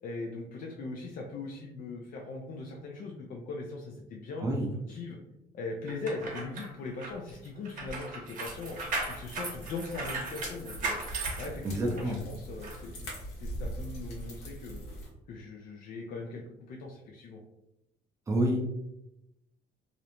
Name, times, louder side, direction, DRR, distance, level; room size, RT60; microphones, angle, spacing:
voice 1, 0.0-4.5 4.9-5.2 5.5-8.8 9.1-11.0 11.4-14.8 15.3-16.4 16.7-17.4, left 3 dB, 55° left, 0 dB, 0.4 m, -40 dB
sound 1, 5.9-12.2 12.6-12.8, right 3 dB, 50° right, 0.9 m, -37 dB
sound 2, 8.4-15.1, right 1 dB, 80° left, 1.0 m, -42 dB
voice 2, 11.6-12.2 18.3-18.6, right 1 dB, 20° right, -1 dB, 0.5 m, -28 dB
2.5 x 2.0 x 2.9 m, 0.86 s
cardioid pair, 110°, 17 cm